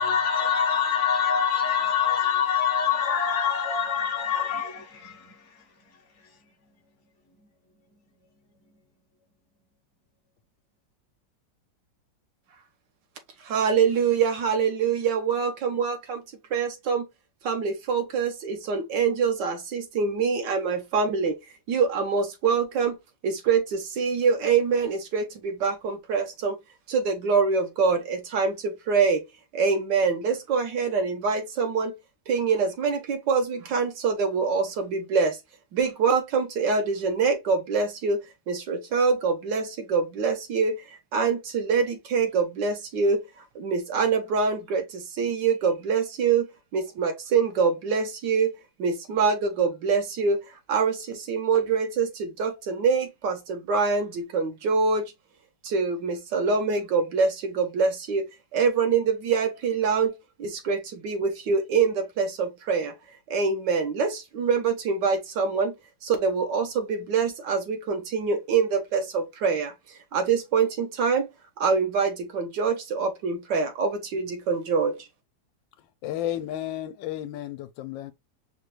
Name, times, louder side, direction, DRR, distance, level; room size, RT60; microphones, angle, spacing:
voice 1, 0.0-5.4, left 7 dB, 50° left, 0.9 m, -25 dB
voice 2, 13.4-16.2 16.5-17.1 17.4-21.3 21.7-23.0 23.2-26.6 26.9-29.2 29.5-31.9 32.3-35.4 35.7-38.2 38.5-40.8 41.1-43.2 43.5-50.4 50.7-55.0 55.6-62.9 63.3-65.7 66.0-69.7 70.1-71.3 71.6-75.0, right 5 dB, 70° right, 1.5 m, -25 dB
voice 3, 76.0-78.1, left 12 dB, 85° left, 1.3 m, -32 dB
5.4 x 2.3 x 3.1 m
omnidirectional pair, 2.0 m